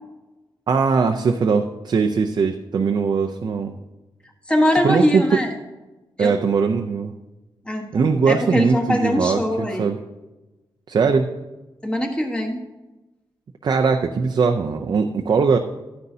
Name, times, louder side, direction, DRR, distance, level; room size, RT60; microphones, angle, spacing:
voice 1, 0.7-3.7 4.8-5.4 6.2-7.1 7.9-10.0 10.9-11.3 13.6-15.6, right 5 dB, 50° right, 4 dB, 0.5 m, -20 dB
voice 2, 4.5-5.5 6.2-6.3 7.6-9.9 11.8-12.6, left 1 dB, 10° left, 2 dB, 1.2 m, -22 dB
11.5 x 9.5 x 2.7 m, 1.1 s
wide cardioid pair, 130°, 9 cm